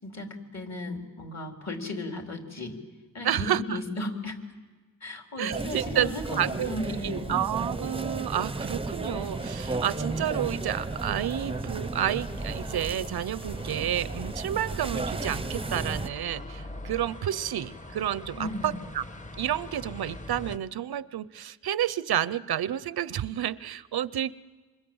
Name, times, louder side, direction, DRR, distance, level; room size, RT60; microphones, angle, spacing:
voice 1, 0.0-2.8 3.1-4.4 5.0-7.4 18.4-18.8, left 1 dB, 45° left, 2 dB, 4.0 m, -35 dB
voice 2, 3.2-3.8 5.4-6.1 6.4-6.8 7.0-19.0 19.4-24.3, right 11 dB, 90° right, 17 dB, 0.7 m, -30 dB
sound 1, 5.5-16.1, right 3 dB, 15° right, 0.8 m, -34 dB
sound 2, 9.1-20.6, left 1 dB, 20° left, 1.3 m, -42 dB
26.5 x 26.0 x 8.0 m, 1.3 s
wide cardioid pair, 105°, 37 cm